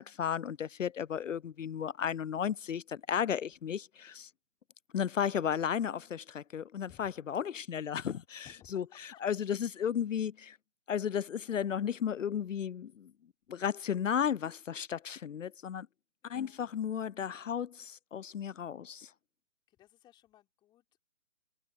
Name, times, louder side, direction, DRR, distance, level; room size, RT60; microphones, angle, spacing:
voice 1, 0.0-4.3 4.9-8.5 8.7-10.6 10.9-13.1 13.5-15.9 16.3-19.1, left 8 dB, 80° left, 0.5 m, -34 dB
voice 2, 3.4-3.8 6.8-7.1 7.5-7.6 8.4-9.2 9.5-9.8 11.5-11.8 16.2-16.7 19.7-21.0, left 13 dB, 10° left, 3.6 m, -61 dB
figure-of-eight pair, 145°, 38 cm